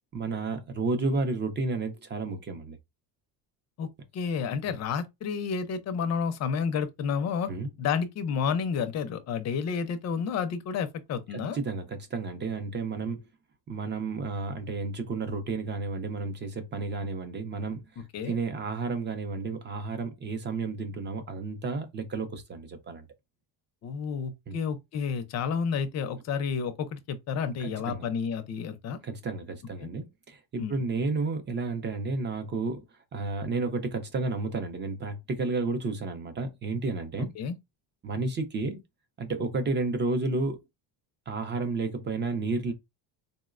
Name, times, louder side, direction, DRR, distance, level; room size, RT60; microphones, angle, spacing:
voice 1, 0.1-2.8 4.7-4.8 7.5-7.7 11.3-13.2 13.7-17.8 18.3-23.0 24.5-24.6 27.6-28.1 29.0-32.8 33.1-37.3 38.0-38.8 39.2-40.6 41.3-42.7, right 3 dB, 25° right, 0.5 m, -31 dB
voice 2, 3.8-7.5 7.8-11.6 18.0-18.4 23.8-29.0 29.8-29.9 30.6-30.8 37.4-37.6, left 6 dB, 40° left, 0.5 m, -30 dB
3.8 x 2.1 x 2.4 m
cardioid pair, 140°, 44 cm